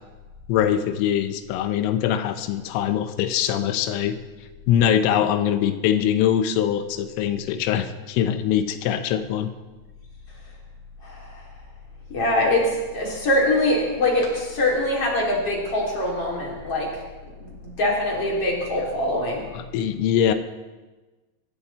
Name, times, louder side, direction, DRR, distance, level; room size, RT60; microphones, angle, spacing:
voice 1, 0.5-4.2 4.7-9.5 19.5-20.3, left 10 dB, 90° left, 9 dB, 3.5 m, -22 dB
voice 2, 12.1-16.9 17.4-19.4, left 1 dB, 35° left, -3 dB, 3.5 m, -23 dB
24.5 x 13.5 x 4.2 m, 1.2 s
omnidirectional pair, 5.6 m